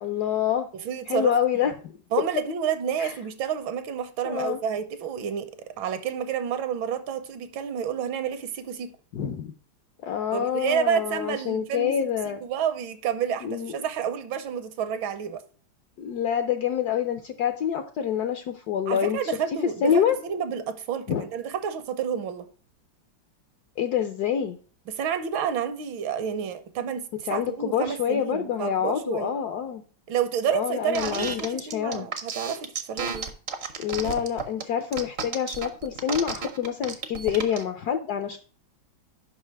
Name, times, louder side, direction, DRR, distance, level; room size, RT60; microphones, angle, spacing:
voice 1, 0.0-0.7 1.1-1.7 3.0-3.1 4.2-4.6 9.1-9.5 10.0-12.4 13.4-13.7 16.0-19.2 19.8-20.2 21.1-21.3 23.8-24.6 27.3-29.8 30.5-32.1 33.8-38.4, left 9 dB, 70° left, 0.9 m, -26 dB
voice 2, 0.8-1.3 2.1-5.5 5.8-8.9 10.3-15.4 18.9-22.5 24.9-29.3 30.1-33.3, right 8 dB, 75° right, 1.5 m, -29 dB
sound 1, 30.9-37.6, right 5 dB, 55° right, 0.7 m, -32 dB
5.6 x 5.5 x 4.6 m
omnidirectional pair, 2.2 m